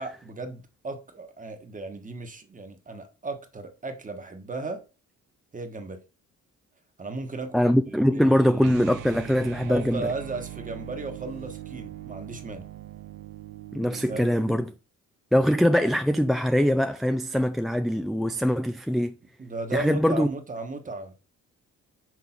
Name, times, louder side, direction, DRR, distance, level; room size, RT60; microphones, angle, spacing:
voice 1, 0.0-4.9 5.5-6.0 7.0-8.8 9.7-12.7 14.1-14.3 19.4-21.1, right 3 dB, 25° right, 1.3 m, -35 dB
voice 2, 7.5-10.1 13.7-14.7 15.3-19.1 19.7-20.3, equal, ahead, 0.3 m, -22 dB
sound 1, 8.6-14.7, right 13 dB, 90° right, 0.5 m, -41 dB
6.1 x 3.4 x 5.7 m
cardioid pair, 90°, 30 cm